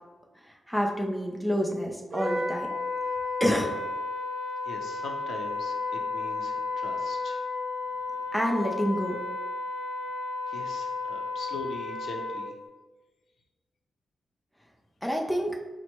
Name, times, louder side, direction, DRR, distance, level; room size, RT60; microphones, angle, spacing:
voice 1, 0.7-2.7 3.4-3.7 8.3-9.2 15.0-15.6, equal, ahead, 0 dB, 0.5 m, -27 dB
Wind instrument woodwind instrument, 2.1-12.5, left 3 dB, 65° right, 0.7 m, -33 dB
voice 2, 4.6-5.8 6.1-7.4 10.5-12.5, left 3 dB, 75° left, 2 dB, 0.6 m, -41 dB
4.4 x 2.1 x 4.3 m, 1.2 s
wide cardioid pair, 165°, 0 cm